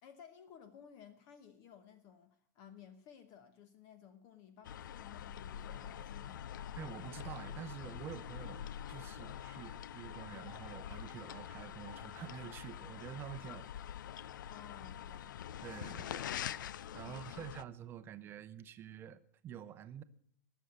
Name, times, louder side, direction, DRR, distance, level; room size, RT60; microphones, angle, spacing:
voice 1, 0.0-6.5 9.5-9.7 14.5-15.4 17.0-17.5, left 8 dB, 35° left, 11 dB, 1.0 m, -57 dB
sound 1, 4.6-17.6, left 10 dB, 90° left, 0.5 m, -45 dB
voice 2, 6.8-13.7 15.6-20.0, right 9 dB, 20° right, 13 dB, 0.7 m, -48 dB
19.5 x 7.0 x 7.9 m, 0.63 s
supercardioid pair, 160°, 10 cm